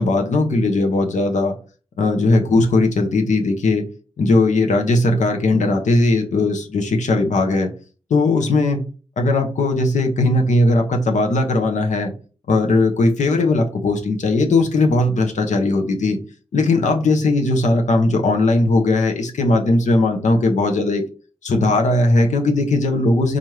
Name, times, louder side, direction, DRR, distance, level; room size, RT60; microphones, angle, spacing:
voice 1, 0.0-1.5 2.0-3.8 4.2-7.7 8.1-8.8 9.2-12.1 12.5-16.2 16.5-21.0 21.4-23.4, left 2 dB, 85° left, 3 dB, 0.7 m, -18 dB
4.3 x 2.5 x 3.1 m, 0.36 s
cardioid pair, 45°, 12 cm